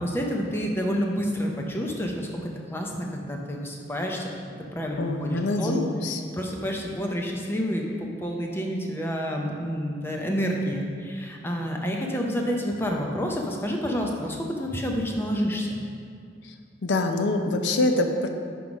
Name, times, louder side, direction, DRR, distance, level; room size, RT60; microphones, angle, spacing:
voice 1, 0.0-4.3 4.7-5.8 6.1-15.8, equal, 15° left, 0 dB, 0.6 m, -29 dB
voice 2, 5.0-6.2 16.8-18.3, left 2 dB, 80° left, 5 dB, 0.6 m, -25 dB
5.6 x 4.6 x 5.1 m, 2.3 s
head